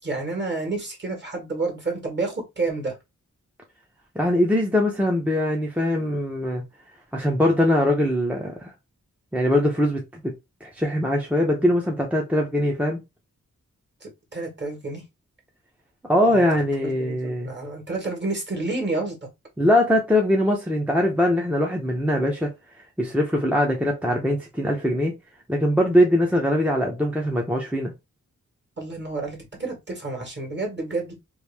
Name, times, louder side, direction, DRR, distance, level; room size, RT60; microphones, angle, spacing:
voice 1, 0.0-3.0 14.0-15.0 16.3-16.4 16.8-19.3 28.8-31.1, right 3 dB, 35° right, 1.7 m, -30 dB
voice 2, 4.2-6.6 7.1-8.7 9.3-10.3 10.6-13.0 16.1-17.5 19.6-22.5 23.0-25.1 25.5-27.9, left 1 dB, 5° right, 0.6 m, -22 dB
3.1 x 2.5 x 3.3 m
wide cardioid pair, 130°, 31 cm